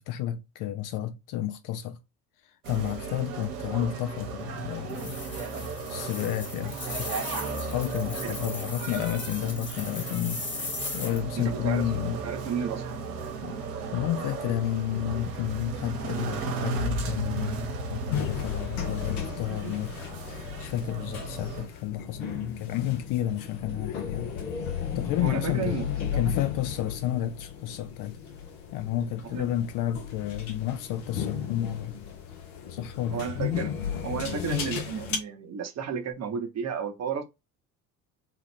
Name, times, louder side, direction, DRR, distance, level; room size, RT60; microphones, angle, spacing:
voice 1, 0.0-2.0 2.7-5.2 5.9-10.4 10.9-12.2 13.4-13.6 13.9-19.9 20.2-24.3 25.0-25.8 26.1-28.2 28.7-32.0 32.7-33.3, left 12 dB, 45° left, 0.4 m, -31 dB
sound 1, 2.6-21.7, right 4 dB, 70° right, 0.9 m, -35 dB
sound 2, 4.9-11.2, left 3 dB, 25° left, 1.1 m, -38 dB
voice 2, 11.4-12.0 12.2-12.9 19.1-19.8 25.2-26.3 29.2-29.5 33.1-33.7 34.0-37.2, right 7 dB, 35° right, 0.8 m, -33 dB
sound 3, 18.1-35.2, left 8 dB, 70° left, 1.0 m, -34 dB
3.0 x 2.4 x 3.3 m
figure-of-eight pair, 60°, 46 cm